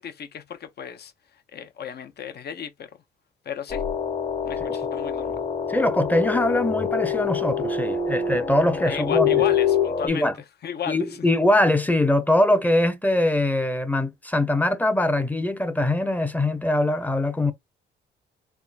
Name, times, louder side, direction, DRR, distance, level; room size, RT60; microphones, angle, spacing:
voice 1, 0.0-2.9 3.4-3.8 4.4-5.4 8.8-10.3 10.6-11.2, left 8 dB, 55° left, 0.8 m, -35 dB
sound 1, 3.7-10.1, left 7 dB, 35° left, 1.2 m, -25 dB
voice 2, 5.7-9.4 10.0-10.3 10.9-17.5, left 1 dB, 10° left, 0.7 m, -22 dB
3.6 x 3.2 x 2.4 m
cardioid pair, 90°, 20 cm